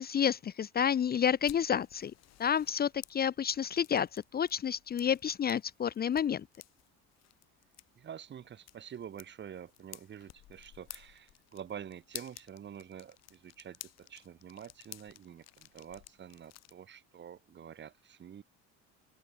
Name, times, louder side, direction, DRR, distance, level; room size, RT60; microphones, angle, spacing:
voice 1, 0.0-2.1 2.4-6.5, left 8 dB, 30° left, 1.0 m, -30 dB
sound 1, 1.2-16.7, left 16 dB, 60° left, 1.8 m, -54 dB
voice 2, 8.0-18.4, right 9 dB, 40° right, 3.2 m, -47 dB
open air
cardioid pair, 130°, 29 cm